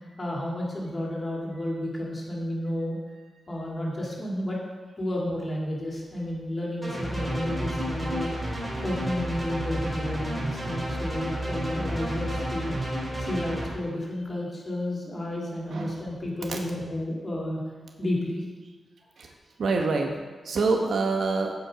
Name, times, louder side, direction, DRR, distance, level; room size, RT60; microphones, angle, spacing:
voice 1, 0.2-3.0 3.5-4.6 5.0-8.3 8.8-12.7 13.3-17.6 18.0-18.4, left 1 dB, 30° left, -3 dB, 2.4 m, -31 dB
sound 1, 6.8-13.7, equal, 10° right, 3.8 m, -31 dB
voice 2, 15.7-16.0 16.5-16.6 19.6-20.1 20.4-21.5, right 3 dB, 70° right, 2 dB, 1.1 m, -25 dB
15.5 x 5.2 x 5.0 m, 1.4 s
wide cardioid pair, 160°, 0 cm